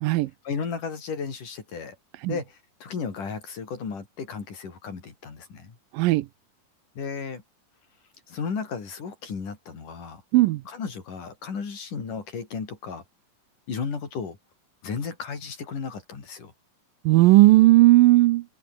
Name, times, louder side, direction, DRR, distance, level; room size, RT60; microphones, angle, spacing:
voice 1, 0.4-2.0 2.3-5.8 7.0-7.4 8.3-10.2 10.7-13.0 13.7-14.4 14.8-16.5, left 5 dB, 65° left, 5.9 m, -34 dB
voice 2, 5.9-6.3 10.3-10.6 17.1-18.4, right 18 dB, 85° right, 2.4 m, -16 dB
omnidirectional pair, 3.9 m